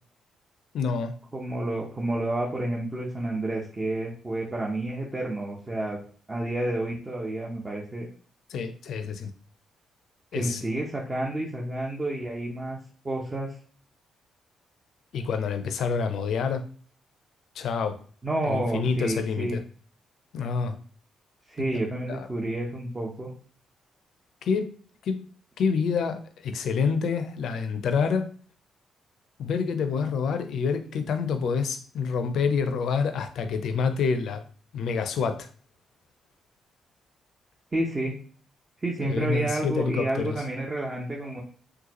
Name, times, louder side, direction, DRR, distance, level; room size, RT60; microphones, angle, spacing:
voice 1, 0.7-1.1 8.5-9.3 10.3-10.6 15.1-16.6 17.6-18.0 18.4-19.6 20.3-20.8 22.1-22.3 24.4-24.7 25.0-25.2 25.6-28.3 29.4-34.5 34.7-35.5 39.0-40.4, left 5 dB, 65° left, 8 dB, 0.5 m, -27 dB
voice 2, 1.3-6.0 6.3-8.1 10.3-12.8 13.0-13.5 18.2-19.6 21.5-23.3 37.7-38.1 38.8-41.4, right 1 dB, 30° right, -3 dB, 0.9 m, -30 dB
3.9 x 2.3 x 2.9 m, 0.43 s
hypercardioid pair, 40°, 0 cm